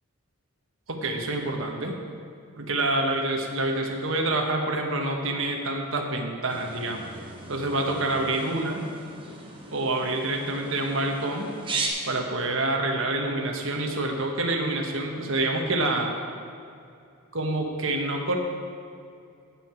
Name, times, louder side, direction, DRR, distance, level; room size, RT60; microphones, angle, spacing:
voice 1, 0.9-2.0 2.6-7.1 7.5-8.8 9.7-11.5 12.1-16.1 17.3-18.4, right 2 dB, 65° right, 2 dB, 1.3 m, -27 dB
sound 1, 6.5-11.9, right 3 dB, 25° right, 1.1 m, -37 dB
16.5 x 5.8 x 4.5 m, 2.5 s
head